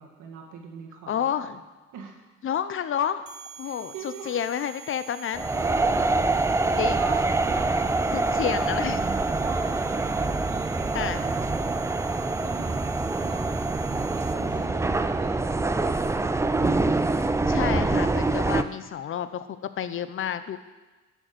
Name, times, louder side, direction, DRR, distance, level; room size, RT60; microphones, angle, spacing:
voice 1, 0.0-1.5 1.9-2.1 3.6-4.3 5.5-6.1 6.7-12.9 13.2-13.4 13.8-16.7, right 6 dB, 85° right, 1 dB, 1.6 m, -42 dB
voice 2, 1.1-1.6 2.4-3.2 3.6-5.5 6.6-7.0 8.1-9.0 10.9-11.2 14.6-15.0 17.2-20.6, left 9 dB, 45° left, 12 dB, 0.6 m, -30 dB
sound 1, 3.3-14.7, right 8 dB, 70° right, 1.0 m, -46 dB
sound 2, 5.3-18.6, right 3 dB, 10° right, 0.3 m, -25 dB
6.4 x 6.3 x 6.6 m, 1.3 s
cardioid pair, 90°, 30 cm